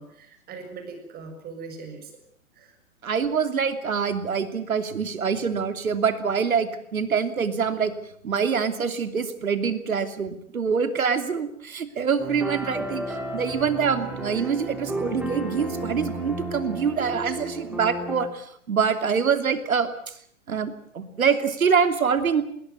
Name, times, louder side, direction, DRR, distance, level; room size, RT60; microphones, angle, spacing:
voice 1, 0.0-2.1 2.6-2.8 14.4-14.5 17.2-17.3, right 4 dB, 20° right, 6 dB, 6.6 m, -40 dB
voice 2, 3.0-7.9 8.2-20.1 20.5-22.4, right 6 dB, 80° right, 9 dB, 3.0 m, -25 dB
sound 1, 12.2-18.3, right 1 dB, 5° right, 4.5 m, -33 dB
20.0 x 20.0 x 9.5 m, 0.65 s
hypercardioid pair, 125°, 41 cm